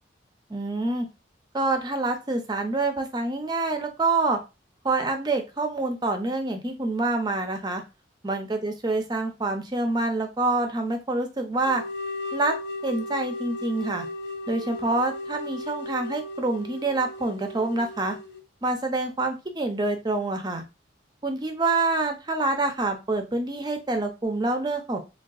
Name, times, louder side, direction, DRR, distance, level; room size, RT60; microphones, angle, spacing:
voice 1, 0.5-1.1 1.5-4.4 4.8-7.8 8.2-11.8 12.3-12.6 12.8-14.0 14.5-18.2 18.6-20.6 21.2-25.0, right 2 dB, 20° right, 5 dB, 0.4 m, -26 dB
sound 1, 11.6-18.4, left 2 dB, 70° left, 0.5 m, -36 dB
3.6 x 2.3 x 2.3 m, 0.27 s
head